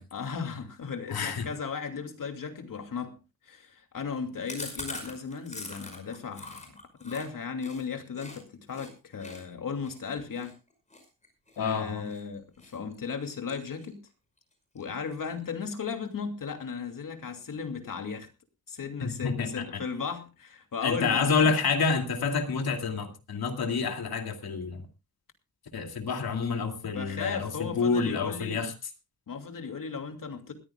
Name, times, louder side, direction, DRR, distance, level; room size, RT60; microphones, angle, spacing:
voice 1, 0.1-3.2 3.4-10.6 11.6-14.0 14.7-18.3 18.7-21.5 26.9-28.6 29.3-30.5, left 5 dB, 65° left, 5 dB, 2.7 m, -36 dB
voice 2, 1.1-1.5 11.6-12.1 19.0-19.8 20.8-24.9 25.7-28.7, left 5 dB, 85° left, 4 dB, 2.5 m, -28 dB
Chewing mastication, 4.5-8.4 8.7-8.9 9.2-12.2 12.6-12.9 13.2-14.1 14.4-14.5 14.8-14.9 15.2-15.7, left 2 dB, 20° left, 5.4 m, -43 dB
20.5 x 14.5 x 2.3 m, 0.28 s
wide cardioid pair, 150°, 36 cm